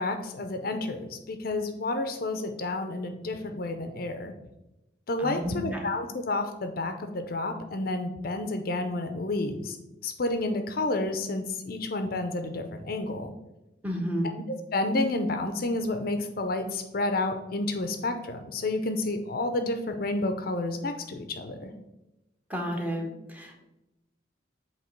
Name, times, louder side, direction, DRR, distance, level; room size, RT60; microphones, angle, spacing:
voice 1, 0.0-4.3 5.1-9.8 10.0-13.3 14.7-21.7, left 2 dB, 55° left, 7 dB, 0.6 m, -30 dB
voice 2, 5.2-5.9 13.8-14.3 22.5-23.6, equal, 10° right, 1 dB, 0.9 m, -32 dB
7.9 x 2.9 x 4.5 m, 0.94 s
head